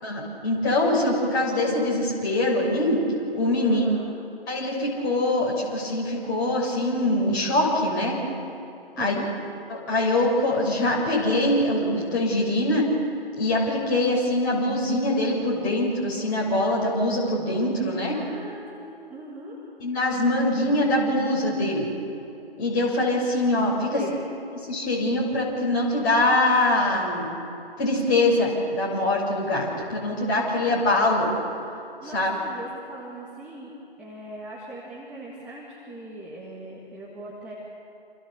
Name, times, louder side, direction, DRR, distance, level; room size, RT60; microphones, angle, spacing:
voice 1, 0.0-3.0 3.3-3.8 4.5-8.2 9.0-9.2 9.7-12.9 13.4-18.2 19.8-21.9 22.6-24.0 24.6-27.3 27.8-31.3 32.1-32.3, left 1 dB, 20° left, -4 dB, 6.8 m, -23 dB
voice 2, 3.6-4.1 8.9-9.3 18.1-19.6 23.9-24.2 30.6-30.9 32.0-37.5, right 2 dB, 5° right, -6 dB, 1.8 m, -39 dB
29.0 x 28.5 x 6.9 m, 2.8 s
figure-of-eight pair, 150°, 31 cm